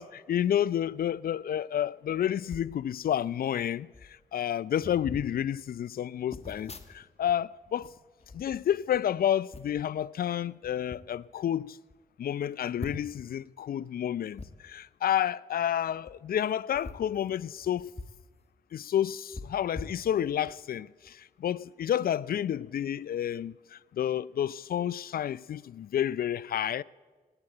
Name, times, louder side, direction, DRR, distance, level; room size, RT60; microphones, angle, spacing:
voice 1, 0.0-3.9 4.3-7.9 8.3-11.8 12.2-17.9 18.7-20.9 21.4-23.5 24.0-26.8, left 10 dB, 60° left, 0.4 m, -30 dB
sound 1, 2.5-2.8 3.6-3.7 3.9-4.2 4.8-5.3 6.3-7.3 7.6-9.0 9.5-9.9 10.6-11.0 11.6-11.7 11.9-12.0 12.8-13.3 14.3-14.5 15.9-16.1 16.7-18.2 18.5-18.6 19.3-20.5 21.0-21.2, left 2 dB, 35° left, 1.4 m, -43 dB
17.5 x 9.8 x 7.7 m
supercardioid pair, 40°, 18 cm